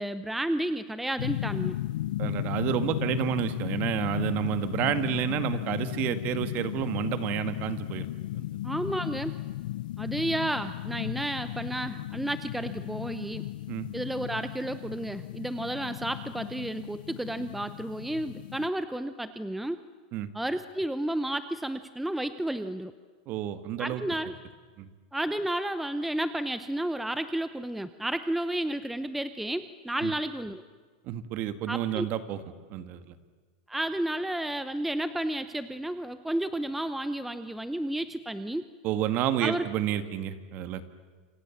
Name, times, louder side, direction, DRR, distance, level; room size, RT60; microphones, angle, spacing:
voice 1, 0.0-1.8 8.6-9.3 10.0-13.5 13.9-19.8 20.3-22.9 23.8-24.3 25.1-30.6 31.7-32.1 33.7-38.6 39.4-39.7, right 1 dB, 5° right, 11 dB, 0.7 m, -32 dB
sound 1, 1.2-18.7, left 14 dB, 80° left, 0.7 m, -35 dB
voice 2, 2.2-8.1 8.3-8.5 13.7-13.9 20.1-20.3 23.3-24.0 24.8-24.9 30.0-30.1 31.1-32.4 32.7-33.1 38.8-40.8, right 11 dB, 40° right, 11 dB, 1.9 m, -30 dB
28.5 x 26.5 x 7.3 m, 1.5 s
supercardioid pair, 150°, 5 cm